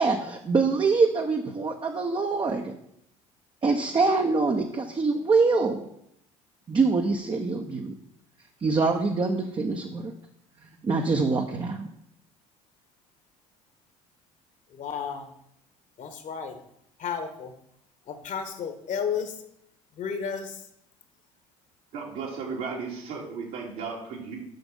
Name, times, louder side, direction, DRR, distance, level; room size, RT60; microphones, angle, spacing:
voice 1, 0.0-2.7 3.6-5.9 6.7-7.9 8.6-10.1 10.8-11.9, right 4 dB, 30° right, 2 dB, 1.1 m, -24 dB
voice 2, 14.7-15.3 16.0-16.6 17.0-17.5 18.1-19.3 20.0-20.6, left 7 dB, 50° left, 7 dB, 1.7 m, -32 dB
voice 3, 21.9-24.4, right 5 dB, 70° right, -2 dB, 2.8 m, -35 dB
7.7 x 6.0 x 5.5 m, 0.74 s
hypercardioid pair, 65°, 16 cm